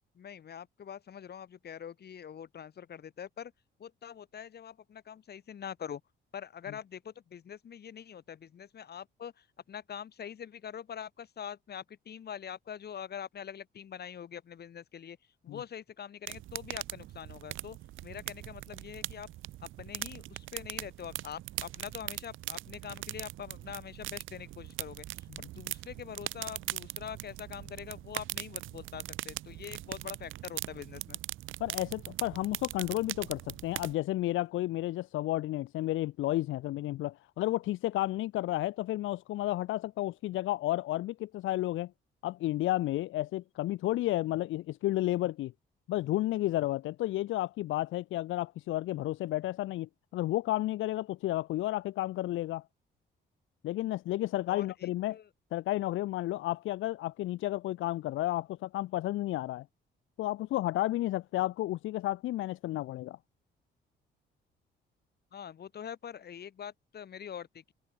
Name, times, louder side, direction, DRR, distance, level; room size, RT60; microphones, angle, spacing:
voice 1, 0.1-3.5 3.8-6.0 6.3-15.2 15.4-17.8 18.0-19.3 19.8-25.1 25.5-31.2 54.5-55.3 65.3-67.7, left 8 dB, 55° left, 2.9 m, -44 dB
sound 1, 16.3-33.9, right 15 dB, 85° right, 1.3 m, -41 dB
voice 2, 31.6-41.9 42.2-45.5 45.9-52.6 53.6-55.2 55.5-59.7 60.2-63.2, left 16 dB, 80° left, 0.8 m, -32 dB
cardioid pair, 90°, 20 cm